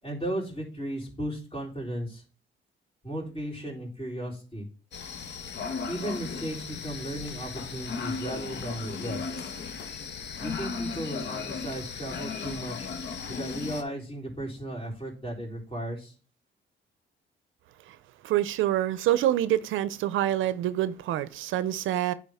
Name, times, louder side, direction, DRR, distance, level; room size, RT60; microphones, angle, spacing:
voice 1, 0.0-2.2 3.0-4.7 5.9-9.4 10.4-12.9 13.3-16.1, right 1 dB, 25° left, 4.1 m, -35 dB
sound 1, 4.9-13.8, left 5 dB, 60° left, 1.0 m, -36 dB
voice 2, 18.2-22.1, right 13 dB, 80° right, 0.5 m, -26 dB
10.0 x 3.6 x 3.5 m
cardioid pair, 90°, 20 cm